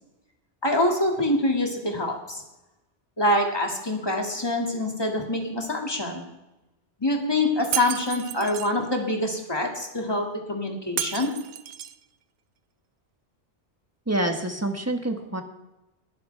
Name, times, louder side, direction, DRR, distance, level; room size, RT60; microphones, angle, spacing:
voice 1, 0.6-2.4 3.2-6.2 7.0-11.3, left 1 dB, 20° left, 0 dB, 2.3 m, -25 dB
Shatter, 7.7-8.7 11.0-12.0, right 10 dB, 65° right, 0.8 m, -32 dB
voice 2, 14.1-15.4, right 1 dB, 15° right, 4 dB, 1.4 m, -27 dB
20.5 x 10.5 x 3.4 m, 0.97 s
omnidirectional pair, 1.2 m